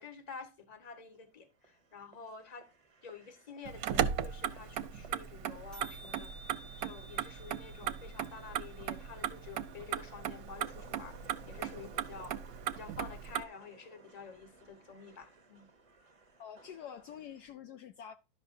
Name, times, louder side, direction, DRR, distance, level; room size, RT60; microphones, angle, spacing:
voice 1, 0.0-2.7 3.0-6.3 6.8-12.4 12.7-15.7, left 5 dB, 25° left, 1.2 m, -49 dB
sound 1, 0.8-17.5, right 3 dB, 30° right, 0.7 m, -59 dB
sound 2, 3.6-3.7 3.9-4.4 4.7-4.8 4.9-5.2 5.4-5.5 5.7-9.7, right 1 dB, ahead, 1.0 m, -55 dB
Motor vehicle (road), 3.7-13.4, right 9 dB, 65° right, 1.0 m, -37 dB
voice 2, 16.4-18.2, left 8 dB, 70° left, 1.1 m, -47 dB
11.5 x 7.2 x 2.6 m
omnidirectional pair, 1.9 m